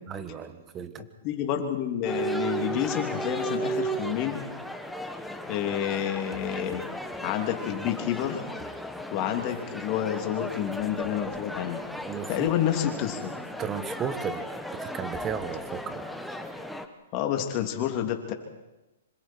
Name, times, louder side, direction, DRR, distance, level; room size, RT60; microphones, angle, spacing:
voice 1, 0.1-1.0 2.7-2.9 12.1-12.5 13.6-14.5 14.7-16.1, right 7 dB, 20° right, 11 dB, 1.6 m, -34 dB
voice 2, 1.2-4.4 5.5-6.8 7.2-8.4 9.1-11.8 12.3-13.3 17.1-18.3, left 10 dB, 35° left, 4 dB, 3.1 m, -29 dB
sound 1, 2.1-16.9, right 1 dB, ahead, 1.2 m, -35 dB
26.5 x 25.5 x 4.7 m, 1.0 s
hypercardioid pair, 145°, 0 cm